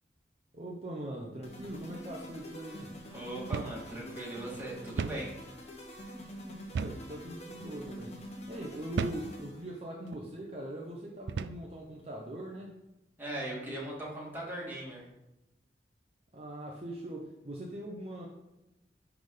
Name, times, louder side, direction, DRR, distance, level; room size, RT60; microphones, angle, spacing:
voice 1, 0.5-2.9 6.7-12.7 16.3-18.3, right 1 dB, 35° right, -2 dB, 0.8 m, -41 dB
sound 1, 1.4-9.8, equal, 35° left, 1.2 m, -46 dB
voice 2, 3.1-5.4 13.2-15.1, right 1 dB, 10° right, -5 dB, 2.0 m, -39 dB
sound 2, 3.5-3.8 4.1-4.2 5.0-5.3 6.7-7.1 7.8-8.0 9.0-9.3 10.0-10.3 11.3-11.7, right 5 dB, 70° right, 0.3 m, -34 dB
10.5 x 3.5 x 3.9 m, 0.96 s
head